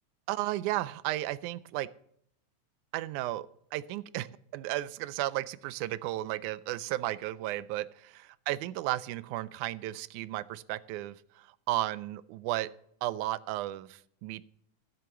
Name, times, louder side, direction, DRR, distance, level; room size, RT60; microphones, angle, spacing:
voice 1, 0.3-1.9 2.9-4.3 4.5-12.7 13.0-14.4, right 16 dB, 90° right, 18 dB, 2.0 m, -34 dB
11.0 x 7.8 x 6.9 m, 0.67 s
omnidirectional pair, 3.4 m